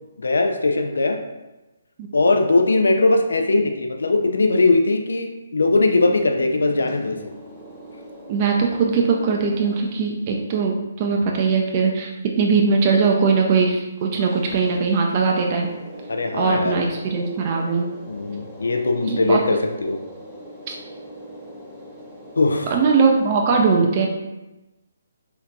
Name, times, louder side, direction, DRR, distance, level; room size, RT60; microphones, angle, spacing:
voice 1, 0.2-1.2 2.1-7.2 16.1-16.8 18.1-20.0 22.4-22.7, left 2 dB, 80° left, 5 dB, 0.4 m, -20 dB
sound 1, 5.7-10.3 14.0-23.3, equal, 5° left, 0.7 m, -41 dB
voice 2, 8.3-15.7 16.3-17.9 19.0-19.6 20.7-20.8 22.7-24.1, right 5 dB, 35° right, 0 dB, 0.4 m, -20 dB
3.8 x 2.7 x 2.3 m, 1.0 s
hypercardioid pair, 150°, 0 cm